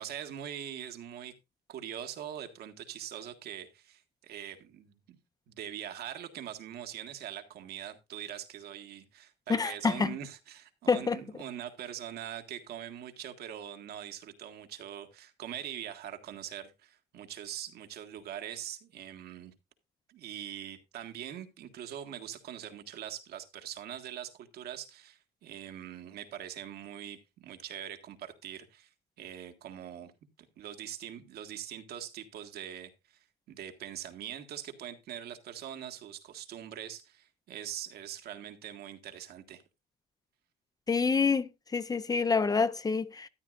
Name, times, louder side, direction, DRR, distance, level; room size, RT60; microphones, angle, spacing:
voice 1, 0.0-1.3 1.7-5.2 5.5-19.5 20.1-28.9 29.2-30.1 30.6-33.2 33.5-39.6, right 10 dB, 70° right, 1.7 m, -43 dB
voice 2, 9.5-10.2 10.9-11.2 40.9-43.3, left 5 dB, 20° left, 0.6 m, -27 dB
13.5 x 9.9 x 2.5 m
cardioid pair, 110°, 17 cm